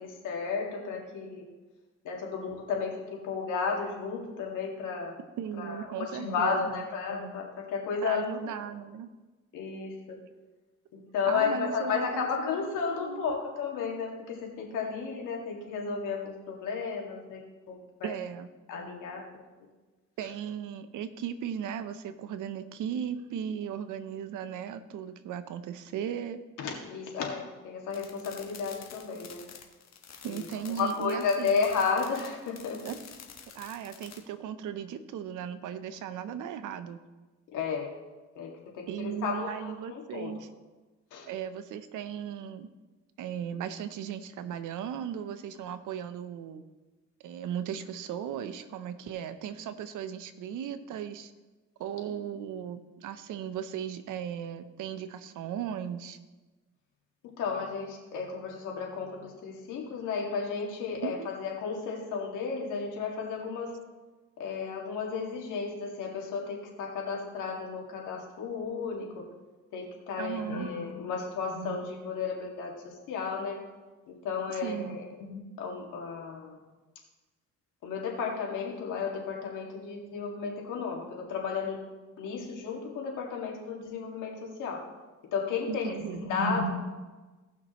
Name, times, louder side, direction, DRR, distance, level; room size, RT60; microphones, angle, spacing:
voice 1, 0.0-1.4 2.0-5.2 5.6-8.5 9.5-10.2 10.9-18.1 18.7-19.2 19.6-19.7 26.6-29.4 30.2-30.5 30.8-32.8 37.5-38.0 38.4-40.3 41.1-41.3 57.4-63.7 64.4-69.2 69.7-73.6 74.2-76.6 77.8-81.8 82.2-84.8 85.3-86.7, left 5 dB, 90° left, 0 dB, 2.2 m, -33 dB
voice 2, 5.4-6.9 8.0-9.1 11.3-13.4 18.0-18.5 20.2-26.4 30.2-31.6 32.8-33.0 33.5-37.0 38.9-40.5 41.3-42.7 43.2-46.6 47.2-51.3 51.8-56.2 61.0-61.3 70.2-70.7 74.5-75.0 85.7-86.2, right 8 dB, 80° right, 11 dB, 0.8 m, -37 dB
sound 1, 27.9-34.2, left 7 dB, 60° left, 1.4 m, -49 dB
17.5 x 6.0 x 3.1 m, 1.2 s
cardioid pair, 90°, 30 cm